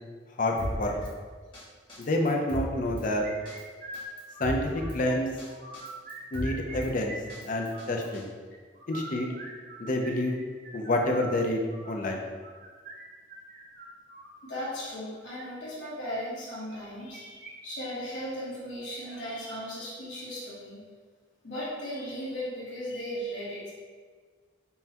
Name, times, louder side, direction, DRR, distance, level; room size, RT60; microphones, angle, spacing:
voice 1, 0.4-0.9 2.0-3.2 4.4-5.3 6.3-7.2 7.4-8.3 8.9-9.3 9.8-10.4 10.7-12.3, left 1 dB, 45° left, 1 dB, 0.5 m, -28 dB
Drum kit, 0.6-1.1 1.5-1.6 1.9-3.1 3.5-3.6 3.9-5.0 5.4-5.5 5.7-6.9 7.3-8.2, equal, 25° left, 1.0 m, -36 dB
sound 1, 3.2-5.1 5.5-6.8 7.0-8.1 8.7-14.4 15.1-15.4 16.7-17.5 17.8-17.9 18.3-18.4 19.0-19.4, right 2 dB, 50° right, 0.6 m, -44 dB
voice 2, 14.4-20.8 21.4-23.7, equal, 75° left, -8 dB, 1.4 m, -37 dB
5.4 x 2.2 x 2.8 m, 1.5 s
head